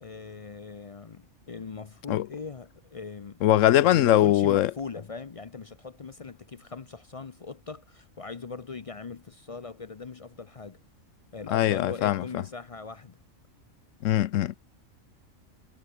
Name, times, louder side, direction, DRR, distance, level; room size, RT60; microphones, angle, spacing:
voice 1, 0.0-3.5 3.8-10.8 11.3-13.2, left 4 dB, 45° left, 0.4 m, -40 dB
voice 2, 3.4-4.7 11.5-12.4 14.0-14.6, left 13 dB, 70° left, 0.9 m, -21 dB
omnidirectional pair, 1.4 m